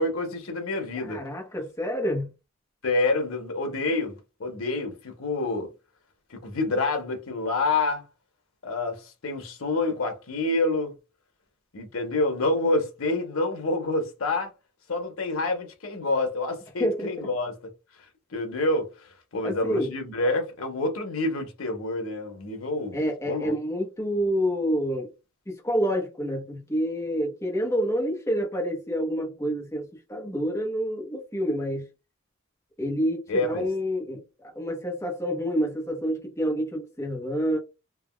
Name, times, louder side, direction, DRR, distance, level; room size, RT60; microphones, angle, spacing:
voice 1, 0.0-1.2 2.8-5.7 6.3-8.0 8.6-10.9 11.7-14.5 14.9-17.5 18.3-23.0 23.2-23.5 33.3-33.6, left 2 dB, 90° left, 0.9 m, -27 dB
voice 2, 0.9-2.3 16.8-17.3 19.4-19.9 22.9-25.1 25.5-31.9 32.8-34.2 34.5-37.6, equal, 15° left, 0.8 m, -28 dB
3.4 x 2.2 x 2.2 m
head